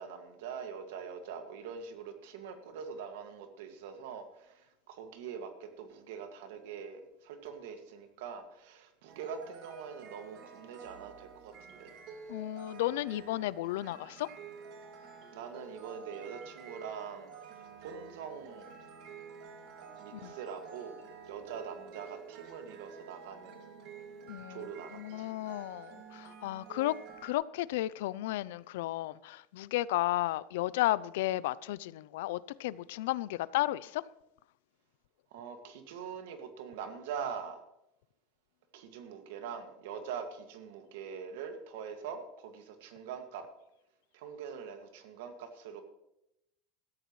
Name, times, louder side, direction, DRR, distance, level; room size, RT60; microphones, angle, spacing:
voice 1, 0.0-11.9 15.3-18.7 20.0-21.0 21.3-23.6 24.5-25.3 35.3-37.6 38.7-43.5 44.1-45.8, right 6 dB, 85° right, 2.0 m, -43 dB
sound 1, 9.1-27.3, right 6 dB, 50° right, 2.5 m, -50 dB
voice 2, 12.3-14.3 20.1-20.3 24.3-27.0 27.2-34.0, left 16 dB, 90° left, 0.5 m, -33 dB
17.0 x 13.5 x 3.2 m
cardioid pair, 160°, 0 cm